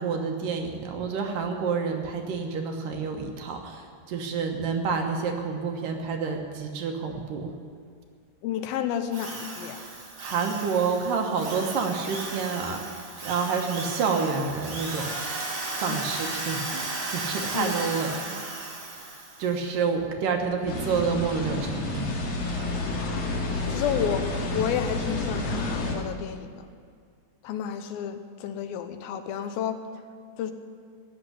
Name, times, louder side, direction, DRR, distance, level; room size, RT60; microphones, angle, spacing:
voice 1, 0.0-7.6 10.2-15.1 15.8-18.4 19.4-22.1, right 5 dB, 70° right, 3 dB, 2.7 m, -29 dB
voice 2, 8.4-9.8 15.9-16.1 17.4-17.7 22.9-23.3 23.7-24.3 24.5-26.7 27.4-29.8 30.4-30.5, left 9 dB, 80° left, 9 dB, 2.6 m, -31 dB
Drill, 9.1-19.5, right 2 dB, 40° right, 1.2 m, -35 dB
sound 1, 20.7-25.9, left 2 dB, 60° left, 3.2 m, -30 dB
16.5 x 6.8 x 9.8 m, 2.1 s
omnidirectional pair, 4.2 m